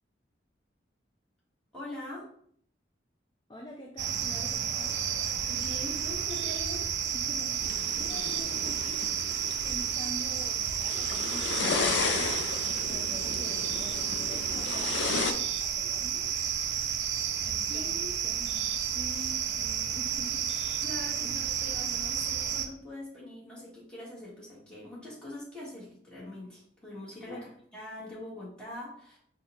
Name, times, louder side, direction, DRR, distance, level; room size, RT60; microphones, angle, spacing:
voice 1, 1.7-2.2 5.5-6.8 17.7-18.1 20.8-27.4 27.7-29.2, left 1 dB, 5° left, -8 dB, 1.5 m, -43 dB
voice 2, 3.5-5.0 7.1-9.2 9.6-12.4 12.9-16.4 17.4-20.8 21.2-21.3 27.3-27.5, left 1 dB, 20° left, 0 dB, 0.4 m, -46 dB
sound 1, 4.0-22.7, right 8 dB, 70° right, 0.4 m, -31 dB
sound 2, 7.6-15.3, left 5 dB, 85° left, 0.4 m, -34 dB
4.3 x 2.3 x 3.6 m, 0.62 s
head